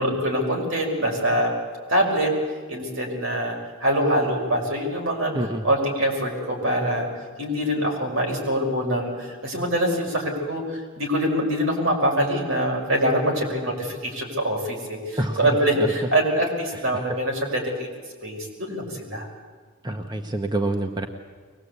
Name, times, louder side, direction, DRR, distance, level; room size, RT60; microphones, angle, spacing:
voice 1, 0.0-1.5 1.9-2.3 2.7-5.3 5.6-7.1 7.4-17.9 18.2-19.3, equal, 75° right, 1 dB, 5.5 m, -24 dB
voice 2, 5.3-5.6 15.2-15.5 15.8-15.9 19.8-21.1, right 1 dB, 20° right, 5 dB, 1.0 m, -26 dB
23.0 x 20.0 x 8.3 m, 1.5 s
head